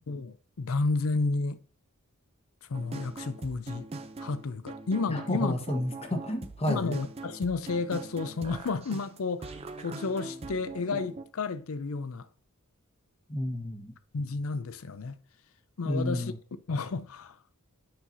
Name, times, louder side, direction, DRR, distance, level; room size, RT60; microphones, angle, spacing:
voice 1, 0.1-1.6 2.6-3.9 4.2-5.5 6.7-12.3 14.1-15.2 15.8-16.3 16.7-17.4, left 3 dB, 70° left, 0.5 m, -31 dB
sound 1, 2.7-11.3, right 3 dB, 25° right, 0.5 m, -42 dB
voice 2, 5.1-6.9 13.3-13.9 15.8-16.4, left 1 dB, 25° left, 1.1 m, -31 dB
8.7 x 5.6 x 2.7 m
head